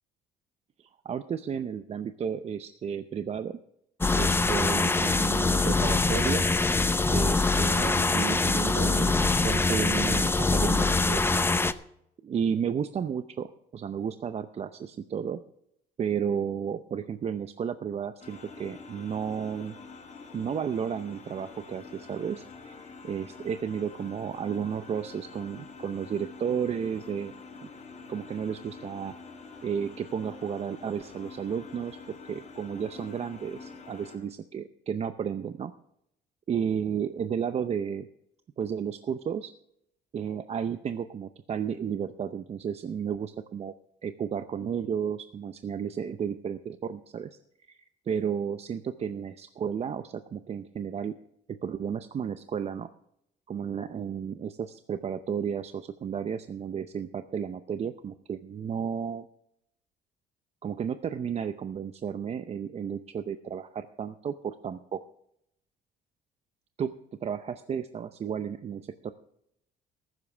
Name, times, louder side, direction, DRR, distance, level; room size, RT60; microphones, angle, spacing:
voice 1, 0.8-3.6 4.1-6.5 7.1-11.3 12.2-13.5 13.7-15.4 16.0-19.7 20.3-27.3 27.6-27.7 28.1-29.1 29.6-32.0 32.3-35.7 36.5-38.1 38.6-39.5 40.1-43.7 44.0-47.4 47.7-51.1 51.6-52.9 53.5-59.3 60.6-65.0 66.8-66.9 67.2-69.1, right 7 dB, 40° right, 10 dB, 0.6 m, -33 dB
sound 1, 4.0-11.7, left 3 dB, 15° left, 0.6 m, -24 dB
sound 2, 18.2-34.2, left 4 dB, 45° left, 4.6 m, -46 dB
14.5 x 12.5 x 3.4 m, 0.75 s
cardioid pair, 110°, 17 cm